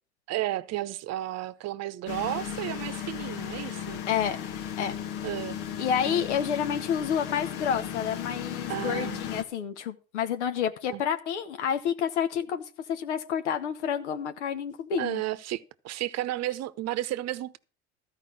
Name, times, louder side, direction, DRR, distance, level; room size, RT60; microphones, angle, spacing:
voice 1, 0.3-4.0 5.2-5.6 6.1-6.3 8.7-9.2 10.9-11.0 15.0-17.6, right 14 dB, 50° right, 0.8 m, -33 dB
sound 1, 2.1-9.4, left 9 dB, 70° left, 1.3 m, -35 dB
voice 2, 4.1-4.4 4.8-4.9 5.8-12.6 12.9-15.2, left 8 dB, 90° left, 0.9 m, -29 dB
13.0 x 5.2 x 7.5 m
hypercardioid pair, 80°, 34 cm